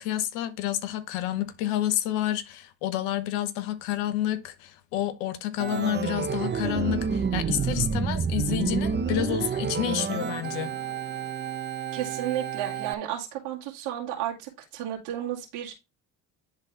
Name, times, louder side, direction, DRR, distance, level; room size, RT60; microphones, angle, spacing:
voice 1, 0.0-10.7, left 12 dB, 80° left, 1.0 m, -29 dB
Organ, 5.6-12.9, right 6 dB, 25° right, 0.7 m, -29 dB
voice 2, 11.9-15.8, right 11 dB, 75° right, 2.2 m, -32 dB
10.5 x 3.8 x 3.3 m
hypercardioid pair, 60°, 46 cm